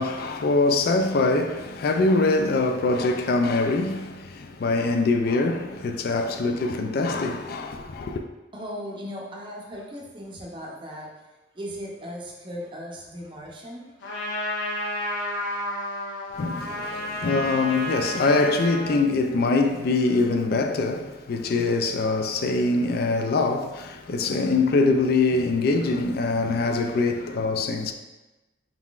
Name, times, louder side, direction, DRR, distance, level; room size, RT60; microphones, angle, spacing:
voice 1, 0.0-8.2 16.3-27.9, left 3 dB, 55° left, 0.3 m, -23 dB
voice 2, 8.5-11.1 11.5-13.9, equal, 25° right, 0.7 m, -37 dB
Trumpet, 14.0-19.0, equal, 75° left, 0.9 m, -31 dB
4.3 x 3.8 x 2.4 m
head